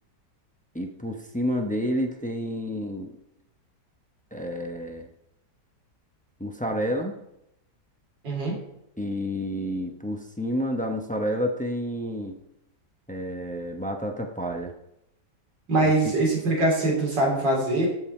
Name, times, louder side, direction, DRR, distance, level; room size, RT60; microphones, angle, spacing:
voice 1, 0.7-3.1 4.3-5.1 6.4-7.1 9.0-12.4 13.1-14.7 15.8-16.1, equal, 10° left, 3 dB, 0.4 m, -29 dB
voice 2, 8.2-8.6 15.7-17.9, right 2 dB, 90° right, -2 dB, 3.9 m, -23 dB
13.5 x 5.6 x 4.4 m, 0.81 s
omnidirectional pair, 1.9 m